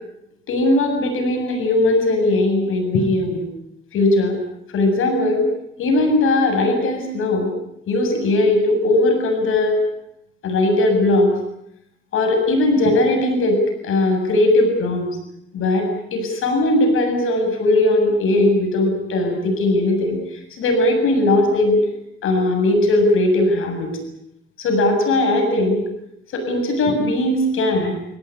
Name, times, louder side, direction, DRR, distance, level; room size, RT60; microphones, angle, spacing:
voice 1, 0.5-3.4 3.9-4.4 4.7-5.5 5.8-7.5 7.9-9.8 10.4-11.3 12.1-15.1 15.5-21.8 22.2-23.9 24.6-25.8 26.3-27.9, left 2 dB, 90° left, 4 dB, 7.6 m, -18 dB
25.0 x 17.5 x 9.9 m, 0.78 s
cardioid pair, 130°, 21 cm